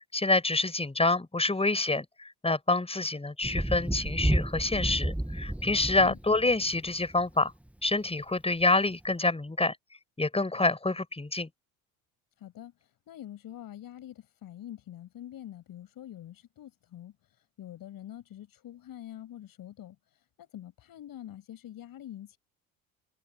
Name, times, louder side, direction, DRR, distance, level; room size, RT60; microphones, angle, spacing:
voice 1, 0.1-7.5 7.8-9.8 10.2-11.5, left 2 dB, 15° left, 7.6 m, -27 dB
Thunder, 3.4-7.3 8.6-8.7, right 1 dB, 5° right, 1.6 m, -31 dB
voice 2, 12.4-12.7 13.1-17.1 17.6-20.0 20.4-22.4, left 12 dB, 55° left, 6.3 m, -45 dB
hypercardioid pair, 65°, 40 cm